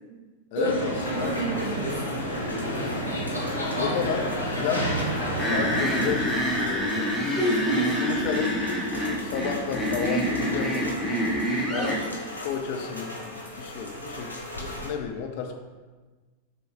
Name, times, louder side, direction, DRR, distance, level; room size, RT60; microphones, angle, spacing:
voice 1, 0.5-1.5 3.7-7.1 7.7-8.6 9.2-11.0 11.7-12.2 12.4-15.5, left 7 dB, 50° left, 4 dB, 0.5 m, -32 dB
sound 1, 0.6-6.1, equal, 85° left, 0.8 m, -29 dB
Rain, 0.9-14.9, left 1 dB, 90° right, 0.7 m, -39 dB
voice 2, 1.1-2.0 7.4-7.9 11.7-12.1, right 1 dB, 50° right, -8 dB, 1.1 m, -28 dB
sound 2, 5.4-12.0, equal, ahead, 1.0 m, -27 dB
6.5 x 2.3 x 3.2 m, 1.3 s
figure-of-eight pair, 90°, 0 cm